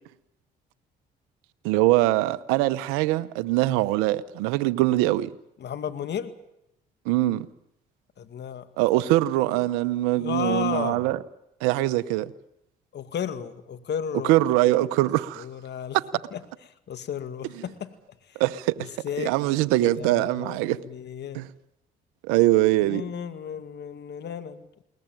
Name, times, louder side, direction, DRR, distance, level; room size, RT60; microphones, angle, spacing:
voice 1, 1.6-5.3 7.1-7.5 8.8-11.2 11.6-12.3 14.2-15.4 15.9-16.0 18.4-18.8 19.2-20.8 21.3-21.5 22.3-23.0, right 17 dB, 85° right, 0.9 m, -22 dB
voice 2, 5.6-6.3 8.2-8.7 10.2-11.1 12.9-15.1 15.4-16.0 16.3-16.4 16.9-17.9 18.3-18.4 18.8-21.5 22.8-24.8, left 8 dB, 60° left, 2.2 m, -34 dB
22.0 x 19.5 x 9.1 m
supercardioid pair, 60°, 20 cm